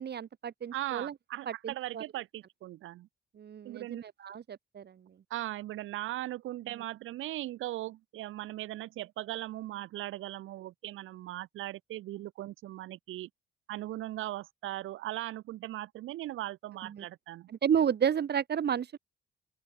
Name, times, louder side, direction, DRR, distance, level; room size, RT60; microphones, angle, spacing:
voice 1, 0.0-1.1 1.5-2.0 3.4-5.0 16.8-17.0 17.5-19.0, right 8 dB, 55° right, 6.4 m, -32 dB
voice 2, 0.7-3.1 3.6-4.0 5.3-13.3 13.7-17.5, right 15 dB, 85° right, 4.7 m, -39 dB
open air
cardioid pair, 90°, 20 cm